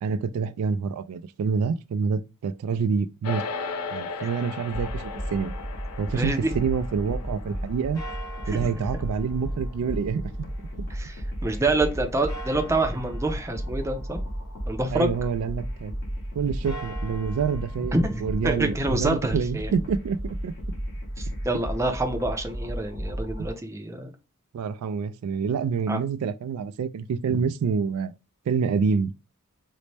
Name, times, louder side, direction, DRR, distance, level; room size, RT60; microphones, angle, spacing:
voice 1, 0.0-3.4 3.9-5.5 6.0-8.0 8.5-10.3 14.9-15.9 16.4-20.5 23.4-23.5 24.5-28.1 28.5-29.1, right 6 dB, 75° right, 0.3 m, -27 dB
sound 1, 3.2-12.8, left 4 dB, 85° left, 0.5 m, -39 dB
sound 2, 4.7-23.5, equal, 65° left, 1.3 m, -34 dB
sound 3, 4.7-6.8 7.9-11.3 12.3-15.2 16.5-20.5, right 1 dB, 15° left, 0.8 m, -47 dB
voice 2, 6.1-6.5 8.5-8.7 10.9-14.2 14.7-15.1 17.9-19.7 21.2-24.1 25.9-26.0 27.3-27.4, right 2 dB, 15° right, 0.5 m, -27 dB
4.0 x 2.1 x 3.2 m
head